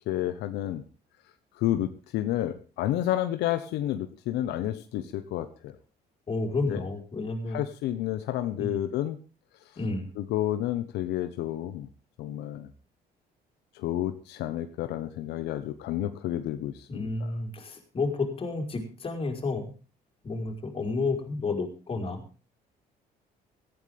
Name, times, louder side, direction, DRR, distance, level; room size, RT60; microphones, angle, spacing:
voice 1, 0.1-0.8 1.5-5.7 6.7-6.8 7.5-9.2 10.2-11.9 12.2-12.7 13.7-17.1, left 13 dB, 85° left, 9 dB, 1.3 m, -30 dB
voice 2, 6.3-7.6 8.6-8.8 9.8-10.1 16.9-19.7 20.2-22.2, left 3 dB, 35° left, 4 dB, 4.7 m, -31 dB
18.0 x 14.0 x 3.6 m, 0.35 s
cardioid pair, 110°, 17 cm